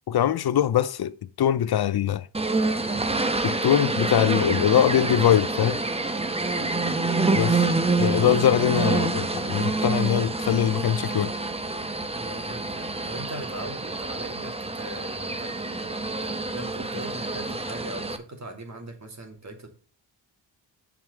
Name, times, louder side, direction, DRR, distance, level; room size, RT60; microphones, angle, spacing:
voice 1, 0.1-2.3 3.4-5.8 7.3-7.6 8.0-11.3, left 10 dB, 60° left, 0.6 m, -22 dB
sound 1, 2.3-18.2, right 3 dB, 15° right, 0.9 m, -27 dB
voice 2, 12.1-19.7, right 1 dB, 40° right, 2.5 m, -40 dB
7.3 x 4.9 x 7.1 m
cardioid pair, 100°, 44 cm